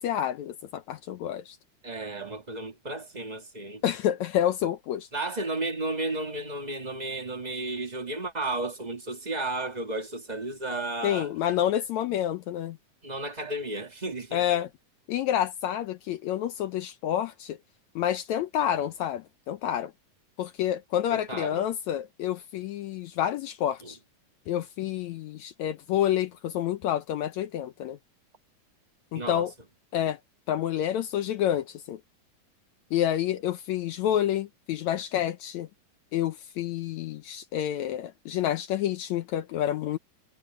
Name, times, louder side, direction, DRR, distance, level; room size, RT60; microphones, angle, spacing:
voice 1, 0.0-1.6 3.8-5.1 11.0-12.8 14.3-14.7 15.1-17.6 18.0-19.9 20.4-24.0 24.5-28.0 29.1-29.5 29.9-30.2 30.5-32.0 32.9-35.7 36.1-40.0, left 11 dB, 75° left, 1.8 m, -28 dB
voice 2, 1.8-3.8 5.1-11.3 13.0-14.5 21.1-21.7 23.8-23.9 29.1-29.5, right 2 dB, 40° right, 0.6 m, -33 dB
omnidirectional pair, 3.8 m